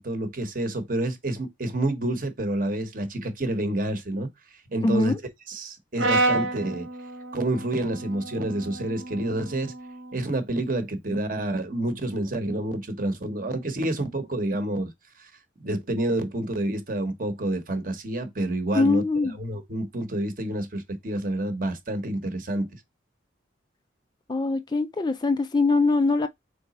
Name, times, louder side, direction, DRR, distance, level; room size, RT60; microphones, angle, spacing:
voice 1, 0.0-4.3 4.7-5.1 5.5-6.9 7.3-9.7 10.1-14.9 15.2-15.3 15.6-19.0 19.4-22.7, right 1 dB, 45° right, 0.9 m, -28 dB
voice 2, 4.8-5.2 18.7-19.4 24.3-26.3, left 3 dB, 20° left, 0.3 m, -22 dB
Brass instrument, 6.0-10.2, right 2 dB, 85° right, 0.9 m, -29 dB
4.0 x 3.3 x 4.1 m
head